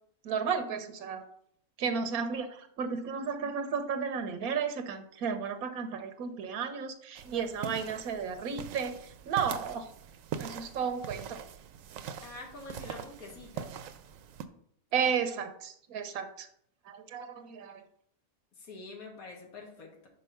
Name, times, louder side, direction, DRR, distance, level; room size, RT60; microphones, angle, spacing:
voice 1, 0.2-1.3 1.8-9.9 10.4-11.4 14.9-16.5 16.8-17.8, right 6 dB, 90° right, 9 dB, 1.3 m, -33 dB
sound 1, 7.2-14.5, right 8 dB, 70° right, 0.9 m, -42 dB
voice 2, 12.2-13.8 18.5-20.1, left 3 dB, 85° left, 1 dB, 2.0 m, -46 dB
5.4 x 5.2 x 5.6 m, 0.68 s
omnidirectional pair, 1.5 m